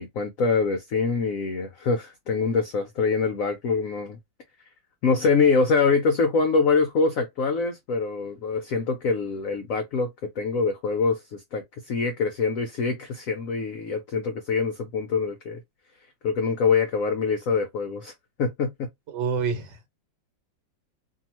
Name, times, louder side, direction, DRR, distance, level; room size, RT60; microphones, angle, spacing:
voice 1, 0.0-4.2 5.0-15.6 16.2-18.1 18.4-18.9, left 4 dB, 70° left, 0.8 m, -24 dB
voice 2, 19.1-19.9, right 5 dB, 65° right, 1.4 m, -27 dB
2.7 x 2.7 x 2.9 m
omnidirectional pair, 2.1 m